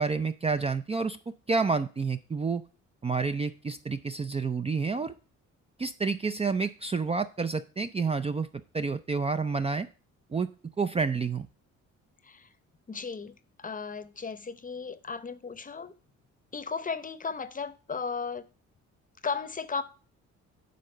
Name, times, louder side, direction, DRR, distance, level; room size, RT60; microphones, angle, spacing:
voice 1, 0.0-2.6 3.0-5.1 5.8-8.5 8.7-9.9 10.3-10.5 10.8-11.5, right 4 dB, 20° right, 0.4 m, -29 dB
voice 2, 12.9-15.9 16.5-18.5 19.2-19.8, left 5 dB, 25° left, 0.8 m, -35 dB
9.3 x 3.8 x 6.6 m
cardioid pair, 90°, 30 cm